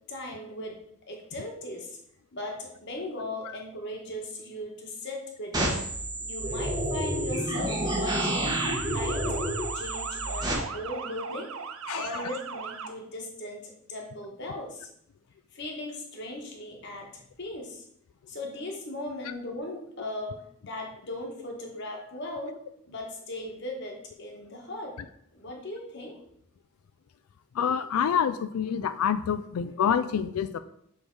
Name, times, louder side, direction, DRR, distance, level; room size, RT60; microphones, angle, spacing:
voice 1, 0.1-0.8 1.1-2.0 2.3-5.7 6.2-8.6 8.8-9.3 9.7-11.5 11.9-14.9 15.5-17.8 18.3-20.3 20.6-22.5 22.9-24.9 25.3-26.2, left 1 dB, 50° left, 1 dB, 1.3 m, -38 dB
sound 1, 5.5-10.5, right 1 dB, 20° right, 0.9 m, -29 dB
Motor vehicle (road) / Siren, 8.6-12.9, right 6 dB, 70° right, 0.5 m, -38 dB
voice 2, 11.9-12.3 27.5-30.6, left 7 dB, 85° left, 12 dB, 0.3 m, -27 dB
6.4 x 3.4 x 4.6 m, 0.71 s
head